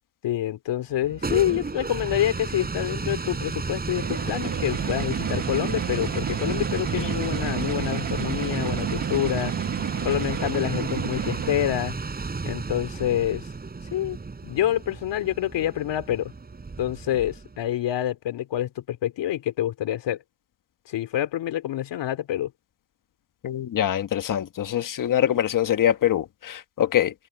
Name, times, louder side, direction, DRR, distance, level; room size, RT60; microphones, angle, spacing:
voice 1, 0.2-9.6 10.0-12.0 12.4-13.5 13.9-14.2 14.4-16.3 16.8-20.2 20.9-22.5, left 12 dB, 75° left, 3.3 m, -27 dB
sound 1, 0.9-17.6, right 4 dB, 20° right, 6.2 m, -33 dB
sound 2, 3.9-11.9, right 9 dB, 45° right, 1.5 m, -31 dB
voice 2, 23.4-27.1, left 11 dB, 45° left, 1.3 m, -24 dB
cardioid pair, 150°, 43 cm